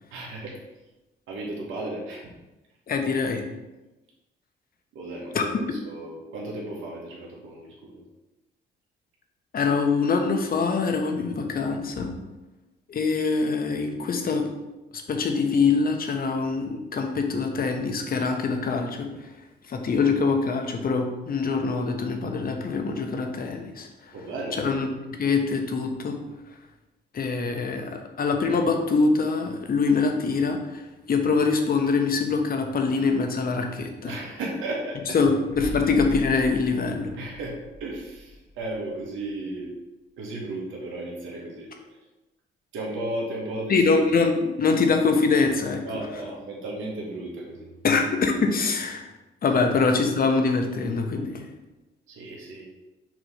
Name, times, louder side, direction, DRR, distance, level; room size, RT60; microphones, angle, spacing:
voice 1, 0.1-0.6 1.3-2.3 4.9-8.0 24.1-24.7 34.1-35.2 35.6-35.7 37.1-39.7 40.2-42.0 42.7-43.8 45.8-47.7 49.4-49.9 52.1-52.7, right 2 dB, 85° right, -3 dB, 1.4 m, -35 dB
voice 2, 2.9-3.4 5.3-5.4 9.5-12.1 12.9-14.5 15.1-19.1 19.7-23.9 24.6-24.9 25.2-26.2 27.1-34.1 35.1-37.1 43.7-45.8 47.8-49.1 49.4-51.5, left 4 dB, 45° left, 4 dB, 1.1 m, -24 dB
sound 1, 35.5-39.2 39.5-39.6, equal, 75° left, 1.6 m, -39 dB
6.1 x 3.1 x 5.6 m, 1.0 s
cardioid pair, 90°, 20 cm